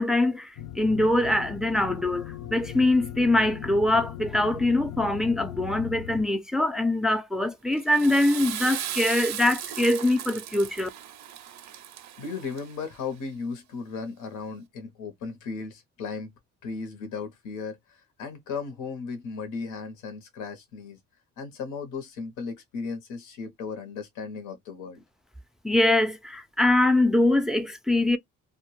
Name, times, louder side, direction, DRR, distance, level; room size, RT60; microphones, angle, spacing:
voice 1, 0.0-10.9 25.6-28.2, left 1 dB, ahead, 0.4 m, -23 dB
sound 1, 0.6-6.2, left 11 dB, 65° left, 0.5 m, -38 dB
Water / Toilet flush, 7.7-13.0, right 11 dB, 65° right, 0.4 m, -37 dB
voice 2, 12.2-16.3 16.6-21.0 21.4-25.0, left 5 dB, 90° left, 0.8 m, -36 dB
2.1 x 2.1 x 3.0 m
cardioid pair, 90°, 30 cm